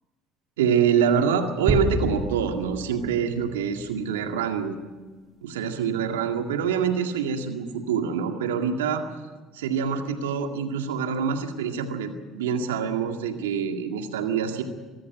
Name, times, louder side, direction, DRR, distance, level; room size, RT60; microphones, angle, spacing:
voice 1, 0.6-4.8 5.4-9.0 9.5-14.6, right 7 dB, 85° right, 5 dB, 2.0 m, -25 dB
sound 1, 1.7-4.2, right 1 dB, 35° right, 2.8 m, -29 dB
23.5 x 14.0 x 9.3 m, 1.3 s
hypercardioid pair, 70°, 0 cm